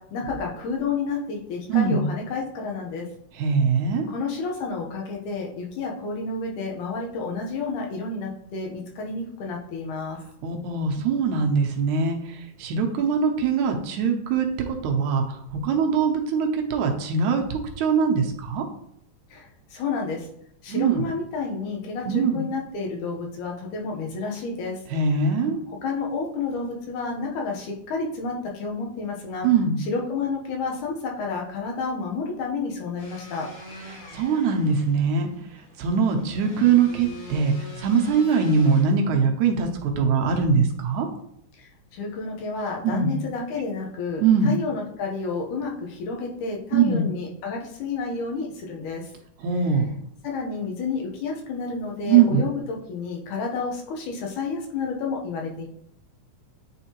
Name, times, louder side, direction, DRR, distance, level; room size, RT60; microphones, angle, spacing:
voice 1, 0.1-3.1 4.1-10.2 19.3-20.3 20.6-24.8 25.7-29.5 29.8-33.5 41.6-49.0 50.2-55.7, left 4 dB, 85° left, 0 dB, 2.6 m, -30 dB
voice 2, 1.7-2.1 3.4-4.1 10.4-18.7 20.7-21.1 22.1-22.4 24.9-25.6 29.4-29.8 33.9-35.3 35.8-41.1 42.8-43.1 44.2-44.6 46.7-47.1 49.4-50.0 52.1-52.4, right 5 dB, 80° right, 2 dB, 2.2 m, -22 dB
sound 1, 33.0-38.8, equal, 45° left, 2.2 m, -43 dB
9.2 x 3.6 x 2.9 m, 0.73 s
omnidirectional pair, 3.4 m